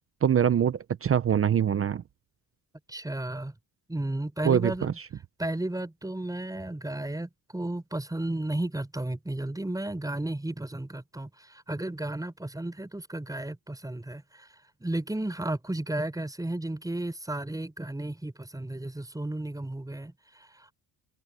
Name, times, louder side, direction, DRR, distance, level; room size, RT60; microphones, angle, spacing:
voice 1, 0.2-2.0 4.4-4.9, right 9 dB, 30° right, 0.6 m, -24 dB
voice 2, 2.9-3.5 3.9-5.0 5.4-14.5 14.8-20.7, right 1 dB, 10° right, 6.3 m, -33 dB
cardioid pair, 135°, 43 cm